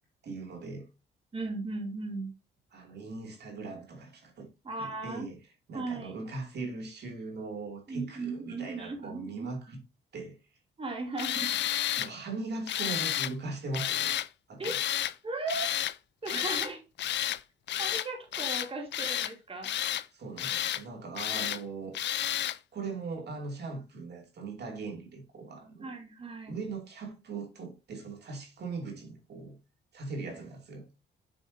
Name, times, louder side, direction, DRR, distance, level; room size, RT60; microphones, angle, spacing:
voice 1, 0.2-0.9 2.7-4.5 4.7-5.4 5.7-9.8 10.1-10.4 12.0-14.1 14.5-14.8 20.1-21.9 22.7-25.9 26.5-29.6 29.9-30.9, right 3 dB, 55° right, 2.6 m, -40 dB
voice 2, 1.3-2.3 4.6-5.3 5.7-6.1 7.9-9.5 10.8-11.5 14.6-14.9 15.2-15.7 16.2-16.8 17.8-20.0 25.8-26.5, right 3 dB, 30° right, 2.7 m, -37 dB
Tools, 11.2-12.1 12.7-13.3 13.7-14.3 14.6-15.1 15.5-16.0 16.3-16.7 17.0-17.4 17.7-18.1 18.3-19.3 19.6-20.1 20.4-20.8 21.2-21.6 22.0-22.6, left 12 dB, 65° left, 0.5 m, -31 dB
7.3 x 6.2 x 2.7 m
cardioid pair, 90°, 20 cm